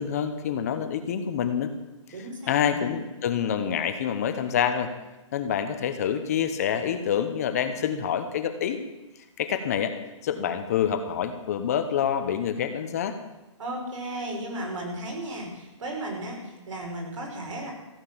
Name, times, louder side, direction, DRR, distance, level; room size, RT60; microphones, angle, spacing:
voice 1, 0.0-1.7 2.5-4.9 5.3-8.8 9.4-9.9 10.2-13.1, left 8 dB, 30° left, 9 dB, 0.9 m, -27 dB
voice 2, 2.1-2.9 13.6-17.7, right 1 dB, 70° right, 0 dB, 5.8 m, -35 dB
15.5 x 8.9 x 7.3 m, 1.1 s
hypercardioid pair, 170°, 16 cm